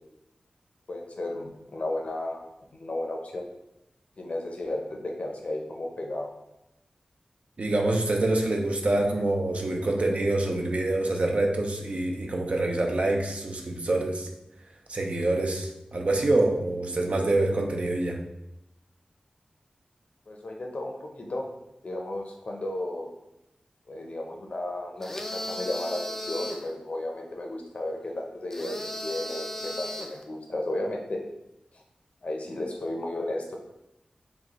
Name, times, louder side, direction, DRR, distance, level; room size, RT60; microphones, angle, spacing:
voice 1, 0.9-2.4 2.7-3.4 4.2-6.3 20.3-21.5 21.8-23.1 23.9-31.2 32.2-33.6, left 1 dB, 60° left, 1 dB, 0.7 m, -33 dB
voice 2, 7.6-14.3 14.9-18.2, right 2 dB, 60° right, 1 dB, 0.5 m, -26 dB
sound 1, 25.0-26.7 28.5-30.2, left 1 dB, 15° left, 0.4 m, -36 dB
5.1 x 2.2 x 3.0 m, 0.87 s
wide cardioid pair, 80°, 2 cm